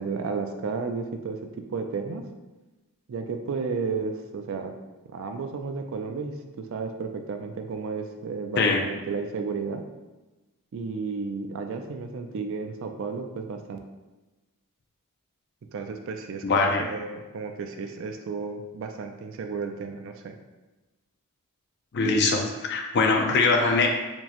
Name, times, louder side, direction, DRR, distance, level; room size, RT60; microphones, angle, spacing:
voice 1, 0.0-1.4 1.7-2.2 3.1-4.7 5.1-9.8 10.7-13.8 15.7-20.3, right 4 dB, 60° right, 5 dB, 0.4 m, -33 dB
voice 2, 16.4-16.9 21.9-23.9, left 3 dB, 50° left, 2 dB, 0.4 m, -22 dB
4.4 x 2.1 x 2.9 m, 1.1 s
head